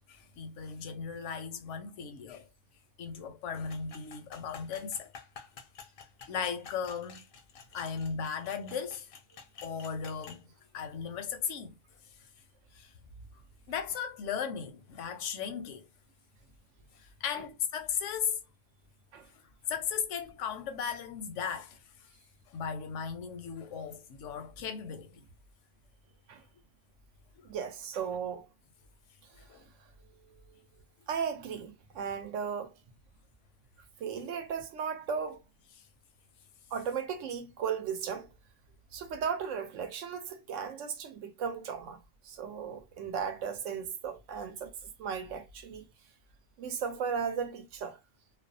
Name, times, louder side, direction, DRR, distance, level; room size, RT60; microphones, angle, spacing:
voice 1, 0.1-2.5 3.0-5.1 6.3-7.3 7.7-9.1 9.6-11.8 12.7-12.9 13.7-15.9 16.9-18.4 19.7-22.1 22.5-25.2 27.4-27.5 29.5-29.6, left 7 dB, 85° left, 0.9 m, -36 dB
sound 1, 3.7-10.4, left 6 dB, 60° left, 0.6 m, -50 dB
voice 2, 27.4-28.5 29.5-29.7 31.1-32.7 34.0-35.4 36.7-38.3 38.9-42.0 42.2-45.8 46.6-48.0, right 6 dB, 85° right, 1.0 m, -36 dB
2.5 x 2.0 x 2.5 m
omnidirectional pair, 1.2 m